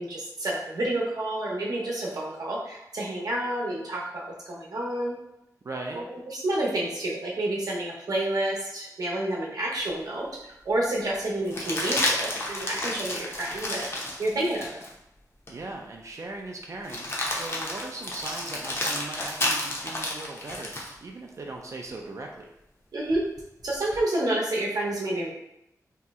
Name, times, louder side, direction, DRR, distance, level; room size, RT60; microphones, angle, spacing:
voice 1, 0.0-5.2 5.9-13.9 14.2-14.7 22.9-23.2 23.6-25.3, right 1 dB, 75° right, -4 dB, 0.8 m, -29 dB
voice 2, 5.6-6.0 15.5-20.7 21.0-22.5, right 2 dB, 50° right, 1 dB, 0.4 m, -39 dB
sound 1, 9.9-10.0 11.5-14.9 15.5-15.6 16.8-20.9 23.1-24.0, left 1 dB, 40° left, 0.6 m, -31 dB
2.7 x 2.0 x 3.5 m, 0.84 s
wide cardioid pair, 115°, 7 cm